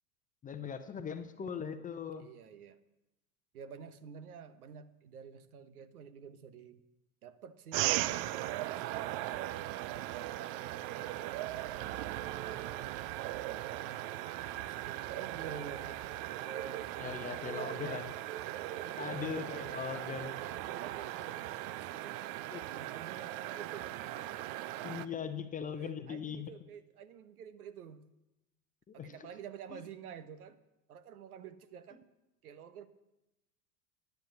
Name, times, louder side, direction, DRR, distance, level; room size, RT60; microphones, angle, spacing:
voice 1, 0.4-2.3 17.0-18.1 19.0-20.3 22.5-22.6 24.8-26.5 28.9-29.1 29.7-29.8, left 7 dB, 15° left, 9 dB, 0.8 m, -40 dB
voice 2, 2.2-2.8 3.5-6.8 7.2-9.2 9.9-11.3 11.8-12.9 13.5-14.2 14.6-18.1 18.5-20.1 20.4-22.3 22.6-24.4 24.7-25.3 25.7-28.1 28.9-30.6 30.9-32.0 32.4-32.9, right 7 dB, 70° right, 12 dB, 1.1 m, -50 dB
sound 1, 7.7-25.1, right 15 dB, 40° right, 0.5 m, -38 dB
10.5 x 10.5 x 7.0 m, 0.95 s
figure-of-eight pair, 90°, 46 cm